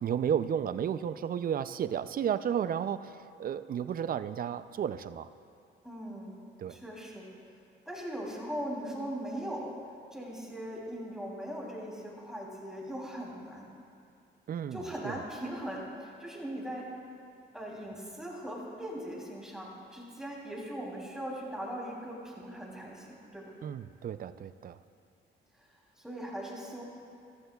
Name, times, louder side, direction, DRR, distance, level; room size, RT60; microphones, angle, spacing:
voice 1, 0.0-5.3 6.6-6.8 14.5-15.2 23.6-24.8, right 8 dB, 45° right, 13 dB, 0.4 m, -33 dB
voice 2, 5.8-6.4 6.7-7.3 7.9-9.7 10.1-13.7 14.7-16.9 17.5-23.5 26.0-26.8, equal, 5° right, -4 dB, 3.0 m, -39 dB
14.5 x 14.5 x 2.3 m, 2.4 s
cardioid pair, 90°, 20 cm